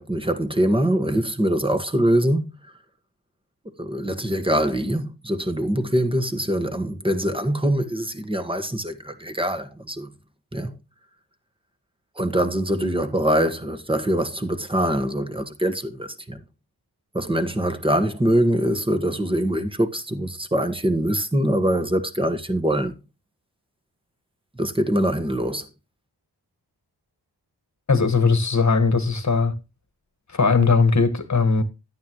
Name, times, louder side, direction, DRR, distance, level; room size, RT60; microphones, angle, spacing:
voice 1, 0.0-2.5 3.8-10.1 10.5-10.7 12.1-16.4 17.1-22.9 24.5-25.7, right 1 dB, 10° right, 1.6 m, -23 dB
voice 2, 27.9-29.5 30.3-31.6, left 4 dB, 40° left, 1.5 m, -19 dB
12.0 x 9.1 x 3.0 m
cardioid pair, 60°, 42 cm